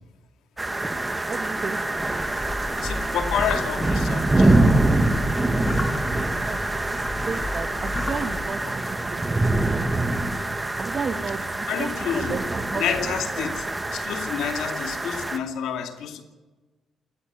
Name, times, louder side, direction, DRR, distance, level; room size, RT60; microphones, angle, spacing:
sound 1, 0.6-15.4, right 2 dB, 15° right, 1.8 m, -25 dB
voice 1, 1.3-1.8 4.3-4.4 6.1-10.2 10.8-13.5, right 5 dB, 40° right, 9 dB, 2.1 m, -34 dB
sound 2, 2.1-8.5, left 2 dB, 25° left, 6.0 m, -33 dB
voice 2, 2.8-4.7 8.6-8.7 11.7-12.4 12.7-16.2, left 8 dB, 85° left, 6 dB, 2.4 m, -29 dB
21.0 x 14.0 x 9.6 m, 1.2 s
cardioid pair, 90°, 0 cm